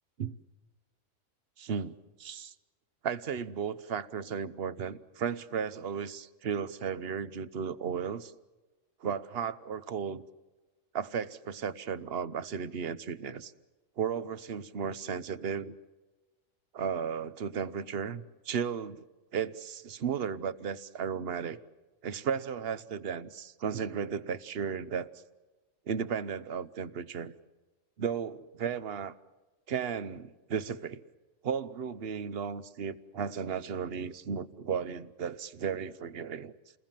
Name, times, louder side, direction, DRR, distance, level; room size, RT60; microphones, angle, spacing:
voice 1, 1.6-2.5 3.0-8.3 9.0-10.2 10.9-13.5 14.0-15.8 16.7-19.0 19.3-21.6 22.0-25.1 25.9-27.3 28.0-29.1 29.7-31.0 31.4-36.5, right 7 dB, 50° right, 15 dB, 1.1 m, -35 dB
29.5 x 20.5 x 7.5 m, 1.2 s
omnidirectional pair, 1.4 m